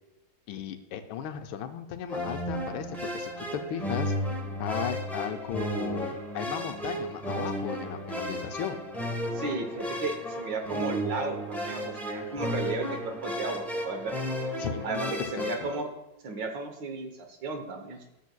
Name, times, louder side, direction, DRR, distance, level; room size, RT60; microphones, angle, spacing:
voice 1, 0.5-4.1 4.6-8.8 14.6-15.7, left 9 dB, 80° left, 7 dB, 1.4 m, -36 dB
sound 1, 2.1-15.8, equal, ahead, 0.7 m, -33 dB
voice 2, 9.3-14.1 14.8-15.9 16.2-18.0, right 3 dB, 65° right, 3 dB, 1.6 m, -34 dB
12.0 x 7.2 x 2.2 m, 0.88 s
omnidirectional pair, 2.2 m